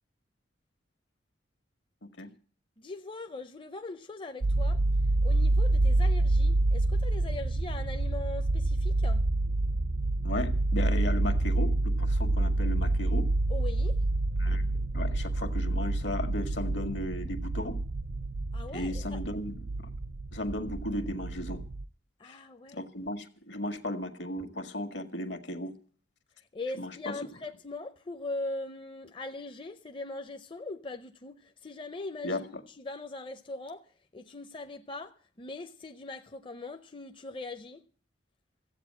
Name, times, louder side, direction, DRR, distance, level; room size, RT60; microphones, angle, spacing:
voice 1, 2.8-4.8 5.2-9.2 13.5-14.0 18.5-19.2 22.2-22.9 26.5-37.9, left 2 dB, 25° left, 0.6 m, -41 dB
sound 1, 4.4-21.8, right 2 dB, 65° right, 0.6 m, -28 dB
voice 2, 10.2-13.3 14.4-14.7 14.9-17.8 18.7-19.9 20.3-21.6 22.2-22.3 22.7-25.7 26.8-27.1 32.2-32.4, left 1 dB, 75° left, 1.7 m, -35 dB
15.0 x 8.2 x 8.6 m
head